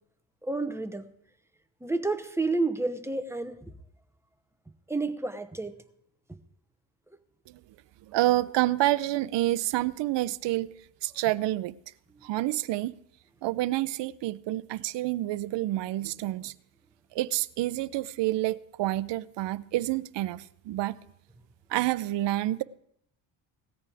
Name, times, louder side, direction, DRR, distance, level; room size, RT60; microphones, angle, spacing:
voice 1, 0.4-1.1 1.8-3.7 4.9-5.7 6.3-6.4, right 3 dB, 5° right, 0.9 m, -30 dB
voice 2, 8.1-10.7 11.0-11.7 12.2-12.9 13.4-16.5 17.1-21.0 21.7-22.6, right 16 dB, 60° right, 0.7 m, -28 dB
18.0 x 14.0 x 3.5 m
cardioid pair, 115°, 49 cm